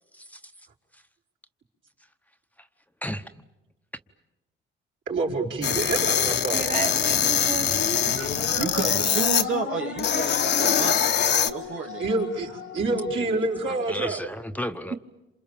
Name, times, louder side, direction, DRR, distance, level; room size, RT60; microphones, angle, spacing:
voice 1, 5.1-6.6 12.0-14.2, right 3 dB, 70° right, -2 dB, 4.8 m, -27 dB
sound 1, 5.6-9.4 10.0-11.5, left 8 dB, 60° left, 1.1 m, -23 dB
voice 2, 6.5-8.0, right 5 dB, 40° right, 6 dB, 3.0 m, -33 dB
sound 2, 7.6-14.1, left 10 dB, 80° left, 1.3 m, -36 dB
voice 3, 8.2-12.1, right 6 dB, 85° right, 0 dB, 2.5 m, -31 dB
voice 4, 13.7-14.9, equal, 5° left, 8 dB, 1.0 m, -33 dB
27.5 x 27.5 x 7.2 m, 1.0 s
cardioid pair, 90°, 20 cm